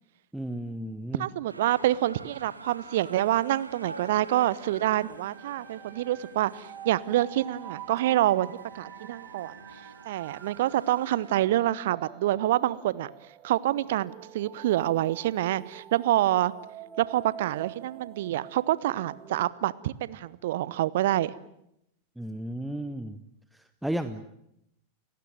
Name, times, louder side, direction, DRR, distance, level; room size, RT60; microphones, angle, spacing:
voice 1, 0.3-1.3 22.2-23.2 23.8-24.3, right 1 dB, 5° right, 11 dB, 1.1 m, -33 dB
voice 2, 1.2-9.5 10.1-13.1 13.4-16.5 17.0-21.3, right 14 dB, 55° right, 20 dB, 0.9 m, -27 dB
sound 1, 1.5-11.5, right 3 dB, 80° right, 2.4 m, -48 dB
sound 2, 4.3-19.5, right 12 dB, 30° right, 1.9 m, -47 dB
30.0 x 16.5 x 9.3 m, 0.79 s
figure-of-eight pair, 90°, 0 cm